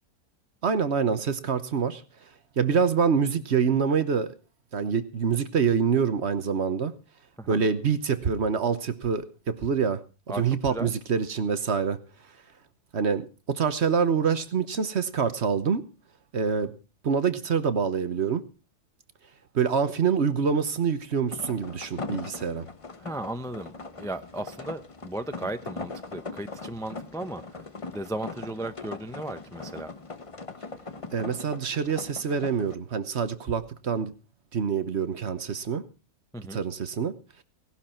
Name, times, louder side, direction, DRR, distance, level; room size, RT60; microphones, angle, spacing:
voice 1, 0.6-2.0 2.6-4.3 4.7-6.9 7.5-10.0 10.4-12.0 12.9-15.8 16.3-16.7 17.0-18.4 19.5-22.7 31.1-34.1 34.5-35.8 36.5-37.1, right 6 dB, 50° right, 12 dB, 1.2 m, -26 dB
voice 2, 10.3-10.9 23.0-29.9 36.3-36.6, right 1 dB, 5° left, 10 dB, 0.4 m, -36 dB
sound 1, 21.3-32.8, left 3 dB, 25° left, 0.8 m, -40 dB
18.0 x 11.5 x 4.4 m, 0.33 s
omnidirectional pair, 1.7 m